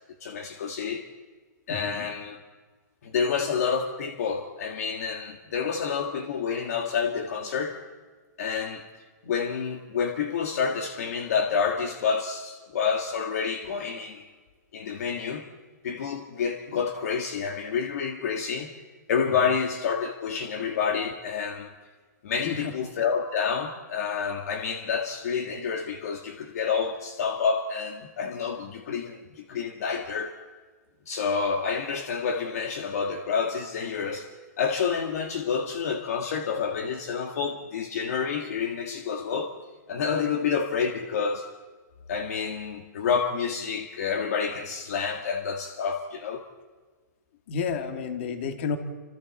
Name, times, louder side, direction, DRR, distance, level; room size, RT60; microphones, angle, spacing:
voice 1, 0.2-1.0 1.7-2.4 3.0-7.8 8.4-14.3 14.7-15.5 15.8-18.7 19.1-21.7 22.2-30.4 31.0-34.3 34.6-39.5 39.9-41.5 42.1-46.4, left 6 dB, 55° left, 1.6 m, -29 dB
voice 2, 1.7-2.1 22.4-22.7 47.5-48.8, left 6 dB, 40° left, 2.3 m, -31 dB
30.0 x 26.5 x 4.3 m
hypercardioid pair, 175°, 10 cm